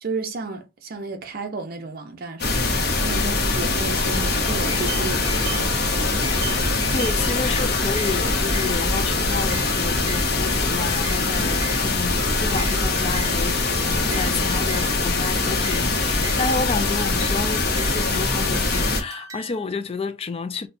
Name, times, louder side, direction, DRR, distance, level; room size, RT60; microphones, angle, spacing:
voice 1, 0.0-2.6 3.0-5.8, right 3 dB, 50° right, 0.6 m, -32 dB
sound 1, 2.4-19.0, left 3 dB, 55° left, 0.8 m, -23 dB
sound 2, 3.9-8.5, right 1 dB, 15° left, 1.3 m, -41 dB
sound 3, 4.6-19.7, right 4 dB, 15° right, 1.0 m, -39 dB
voice 2, 6.4-20.7, left 4 dB, 30° left, 0.3 m, -30 dB
4.2 x 2.2 x 2.6 m
head